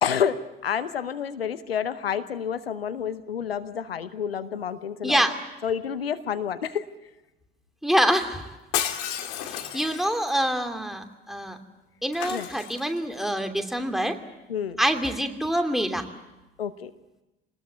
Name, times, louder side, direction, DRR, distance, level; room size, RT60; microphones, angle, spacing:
voice 1, 0.0-5.2 5.6-6.8 9.7-9.8 12.3-12.5 14.5-14.8 16.6-16.9, left 8 dB, 85° left, 13 dB, 0.8 m, -29 dB
voice 2, 5.0-5.4 7.8-8.4 9.5-11.6 12.0-14.2 14.8-16.0, equal, ahead, 5 dB, 2.7 m, -25 dB
Shatter, 8.7-10.3 12.1-13.2 15.0-15.3, left 11 dB, 65° left, 2.1 m, -32 dB
27.0 x 20.0 x 8.5 m, 1.0 s
figure-of-eight pair, 50°, 30 cm